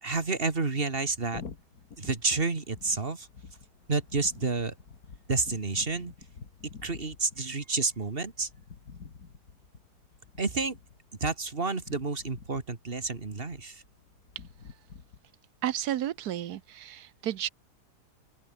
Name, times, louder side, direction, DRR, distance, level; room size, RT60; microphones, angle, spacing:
voice 1, 0.0-1.4 2.0-3.3 3.9-4.7 5.3-6.1 6.6-8.5 10.4-10.8 11.2-13.8, right 3 dB, 35° right, 2.2 m, -30 dB
sound 1, 1.3-15.2, left 5 dB, 60° left, 2.5 m, -49 dB
voice 2, 15.6-17.5, right 11 dB, 70° right, 1.4 m, -32 dB
open air
omnidirectional pair, 1.8 m